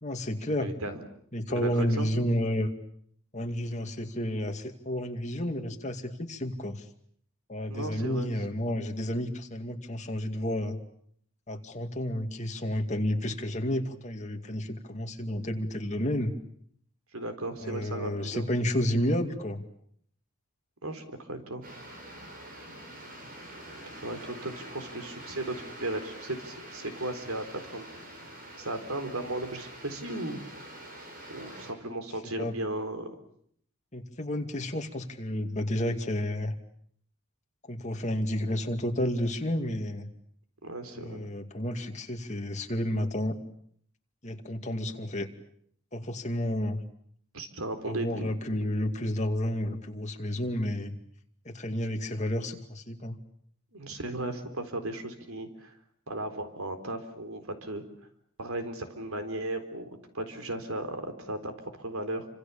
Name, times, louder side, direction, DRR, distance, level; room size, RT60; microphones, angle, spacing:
voice 1, 0.0-0.7 1.3-2.7 3.3-6.8 7.5-10.8 11.5-16.3 17.6-19.6 32.4-32.5 33.9-36.5 37.7-40.1 40.9-43.4 44.2-45.3 45.9-46.8 47.8-51.0 51.5-53.2, left 1 dB, 35° left, 4 dB, 2.4 m, -31 dB
voice 2, 0.6-1.0 1.5-2.1 7.7-8.3 17.1-18.5 20.8-21.7 24.0-27.9 28.6-30.4 31.3-33.1 40.6-41.2 47.3-48.3 53.7-55.7 56.1-57.8 58.4-59.9 60.1-62.3, right 1 dB, 80° right, 8 dB, 4.0 m, -36 dB
sound 1, 21.6-31.7, right 1 dB, 40° right, 7.4 m, -45 dB
28.5 x 26.0 x 7.1 m, 0.66 s
head